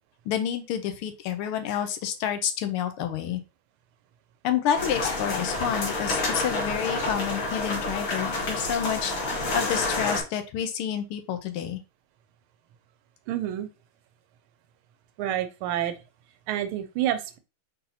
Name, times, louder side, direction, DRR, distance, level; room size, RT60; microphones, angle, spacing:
voice 1, 0.3-3.4 4.4-11.8, left 9 dB, 85° left, 8 dB, 1.6 m, -29 dB
sound 1, 4.7-10.2, left 2 dB, 70° left, 2.0 m, -29 dB
voice 2, 13.3-13.7 15.2-16.0 16.5-17.4, right 11 dB, 85° right, 10 dB, 1.4 m, -28 dB
4.1 x 4.0 x 2.7 m, 0.28 s
omnidirectional pair, 2.3 m